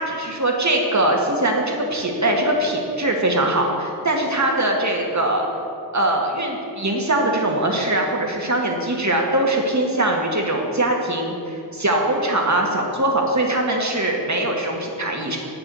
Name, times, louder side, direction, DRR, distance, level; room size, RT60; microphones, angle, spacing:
voice 1, 0.0-5.4 5.9-15.4, right 1 dB, 45° right, 0 dB, 1.9 m, -21 dB
8.9 x 7.0 x 7.0 m, 2.7 s
wide cardioid pair, 45°, 41 cm